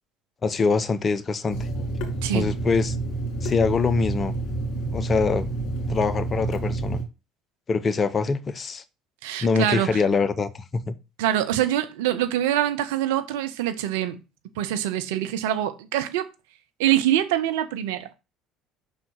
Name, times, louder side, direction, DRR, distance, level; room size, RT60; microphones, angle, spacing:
voice 1, 0.4-1.7 2.3-3.0 3.4-4.3 4.9-5.5 5.9-7.0 7.7-8.8 9.4-10.9, left 4 dB, 35° left, 0.8 m, -24 dB
Water tap faucet / Sink (filling or washing), 1.5-7.0, right 2 dB, 55° left, 2.3 m, -29 dB
voice 2, 9.2-10.0 11.2-14.2 14.6-16.3 16.8-18.1, right 12 dB, 75° right, 0.7 m, -24 dB
5.8 x 4.0 x 6.1 m
hypercardioid pair, 60°, 0 cm